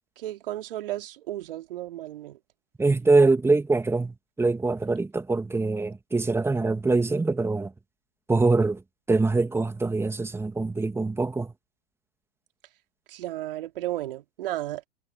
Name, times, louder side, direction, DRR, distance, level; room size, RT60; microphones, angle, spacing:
voice 1, 0.2-2.4 13.1-14.9, right 14 dB, 60° right, 4.2 m, -34 dB
voice 2, 2.8-7.7 8.3-8.8 9.1-11.5, right 3 dB, 10° right, 2.8 m, -23 dB
hypercardioid pair, 105°, 31 cm